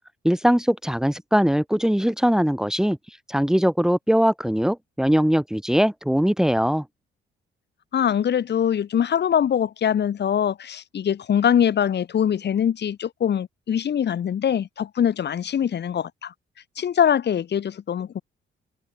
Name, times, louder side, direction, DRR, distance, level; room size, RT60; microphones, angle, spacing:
voice 1, 0.2-3.0 3.3-6.8, equal, 5° right, 2.5 m, -21 dB
voice 2, 7.9-16.3 16.8-18.2, left 9 dB, 60° left, 5.4 m, -23 dB
cardioid pair, 90°, 20 cm